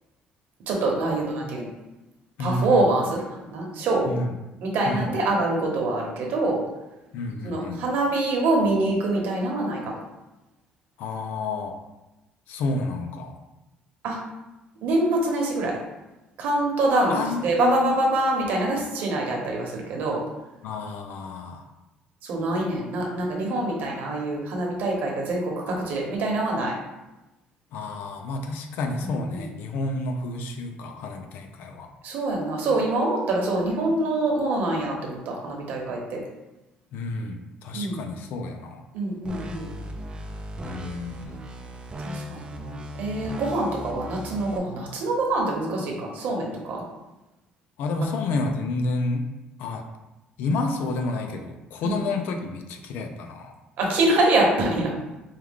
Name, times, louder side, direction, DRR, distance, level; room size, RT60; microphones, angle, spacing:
voice 1, 0.7-1.7 2.4-3.2 3.5-4.1 4.6-6.6 7.4-10.0 14.0-14.2 14.8-15.8 16.4-20.2 22.2-26.7 29.0-29.4 32.0-36.2 37.7-38.0 38.9-39.7 42.0-46.8 51.8-52.0 53.8-54.9, right 2 dB, 65° right, -1 dB, 1.1 m, -25 dB
voice 2, 2.4-2.8 4.1-4.4 4.8-5.1 7.1-7.8 11.0-11.8 12.5-13.4 17.1-18.0 20.6-21.6 27.7-31.9 36.9-38.8 40.6-41.4 47.8-49.3 49.6-49.9 50.4-53.5, left 3 dB, 75° left, 6 dB, 0.5 m, -30 dB
sound 1, 39.2-44.6, equal, 30° right, 0.5 m, -37 dB
4.7 x 2.3 x 3.6 m, 1.0 s
cardioid pair, 135°, 3 cm